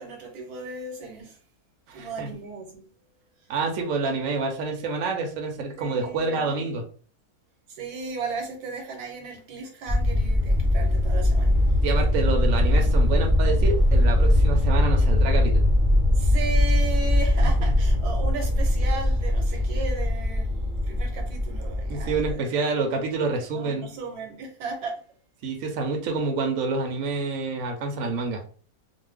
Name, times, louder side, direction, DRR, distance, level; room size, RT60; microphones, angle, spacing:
voice 1, 0.0-1.4 1.9-2.9 3.4-3.5 5.8-6.7 7.7-11.5 16.1-22.9 23.5-25.0, right 4 dB, 85° right, 1.3 m, -36 dB
voice 2, 1.9-2.3 3.5-6.8 11.8-15.7 17.4-17.7 21.9-23.9 25.4-28.4, right 3 dB, 70° right, 0.9 m, -28 dB
sound 1, 9.9-22.3, left 1 dB, 30° right, 0.7 m, -21 dB
2.5 x 2.2 x 3.4 m
omnidirectional pair, 1.6 m